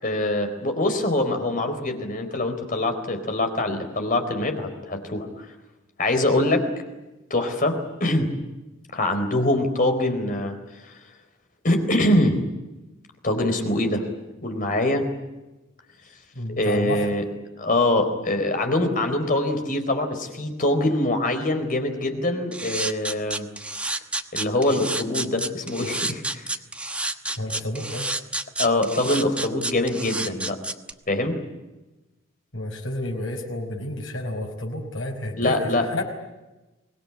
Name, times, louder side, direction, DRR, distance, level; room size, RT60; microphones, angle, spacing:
voice 1, 0.0-5.5 6.0-6.7 7.3-8.3 8.9-10.6 10.8-10.9 11.6-12.4 13.2-14.0 14.4-15.1 16.6-17.2 17.6-23.5 24.3-26.5 28.6-30.6 31.1-31.4 35.3-36.0, left 1 dB, 45° left, 6 dB, 4.1 m, -24 dB
voice 2, 16.4-17.1 27.4-28.1 32.5-35.6 35.9-36.0, left 1 dB, 80° left, 1 dB, 5.2 m, -30 dB
sound 1, 22.5-30.9, right 2 dB, 5° right, 1.1 m, -29 dB
25.0 x 19.5 x 9.9 m, 1.1 s
head